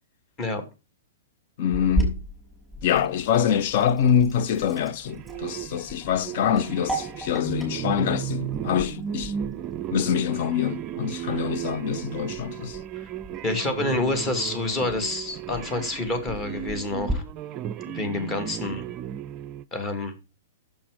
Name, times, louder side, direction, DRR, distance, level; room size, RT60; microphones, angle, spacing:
voice 1, 1.6-2.2 2.8-9.3 9.9-12.8, left 8 dB, 45° left, 0.8 m, -25 dB
Sink (filling or washing), 1.7-17.1, right 2 dB, ahead, 5.8 m, -37 dB
sound 1, 5.1-19.6, right 10 dB, 30° right, 0.4 m, -35 dB
voice 2, 13.4-17.2 17.9-18.8 19.7-20.1, left 2 dB, 25° left, 2.6 m, -28 dB
8.5 x 7.6 x 5.1 m
figure-of-eight pair, 110°, 0 cm